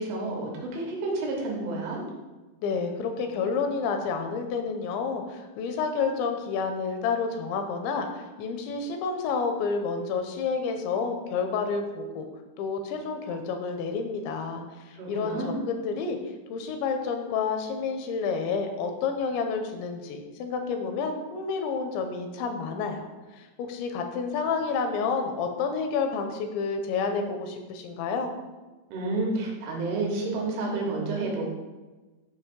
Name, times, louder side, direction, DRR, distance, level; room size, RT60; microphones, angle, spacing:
voice 1, 0.0-2.0 14.9-15.6 28.9-31.5, right 2 dB, 85° right, -1 dB, 3.9 m, -30 dB
voice 2, 2.6-12.3 12.6-16.2 16.5-23.1 23.3-28.3, left 5 dB, 80° left, 5 dB, 2.9 m, -29 dB
9.0 x 3.0 x 6.2 m, 1.2 s
omnidirectional pair, 5.4 m